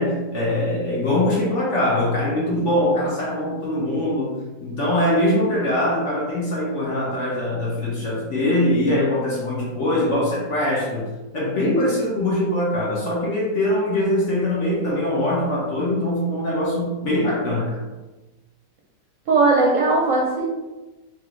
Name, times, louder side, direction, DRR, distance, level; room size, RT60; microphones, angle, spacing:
voice 1, 0.0-17.8, left 1 dB, 55° left, -5 dB, 1.0 m, -22 dB
voice 2, 19.3-20.5, right 3 dB, 60° right, -3 dB, 0.9 m, -18 dB
3.8 x 3.1 x 3.1 m, 1.1 s
omnidirectional pair, 1.9 m